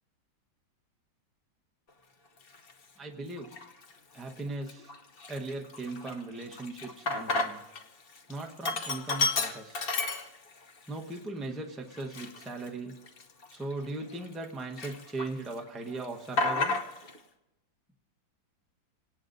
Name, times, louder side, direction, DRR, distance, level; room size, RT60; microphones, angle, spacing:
Sink (filling or washing), 2.5-2.7 3.4-3.9 4.3-4.4 4.7-7.8 8.1-10.7 11.1-11.2 11.9-14.5 14.8-15.5 15.8-17.2, left 3 dB, 50° left, 0.7 m, -32 dB
voice 1, 3.0-3.5 4.1-4.9 5.3-7.6 8.3-9.9 10.9-12.9 13.5-16.8, right 2 dB, ahead, 2 dB, 0.5 m, -38 dB
27.5 x 18.0 x 2.6 m, 1.0 s
omnidirectional pair, 2.2 m